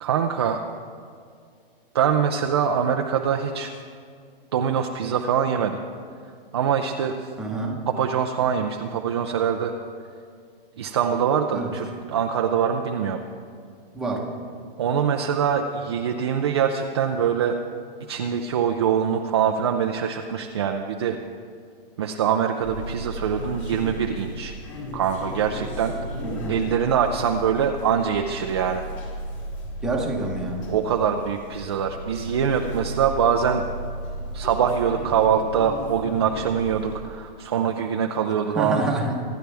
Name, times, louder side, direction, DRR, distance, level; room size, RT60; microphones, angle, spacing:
voice 1, 0.0-0.6 1.9-3.7 4.5-5.8 6.5-7.3 7.9-9.7 10.8-13.2 14.8-17.6 18.1-21.2 22.0-24.5 24.9-25.9 26.5-28.9 30.7-33.6 34.3-38.8, right 8 dB, 30° right, 3 dB, 0.5 m, -23 dB
voice 2, 7.4-7.8 11.5-11.7 13.9-14.3 26.2-26.6 29.8-30.6 38.6-39.2, right 2 dB, ahead, -2 dB, 1.0 m, -27 dB
sound 1, 22.6-37.0, equal, 35° left, 2.6 m, -35 dB
25.0 x 11.5 x 3.4 m, 2.2 s
hypercardioid pair, 170°, 29 cm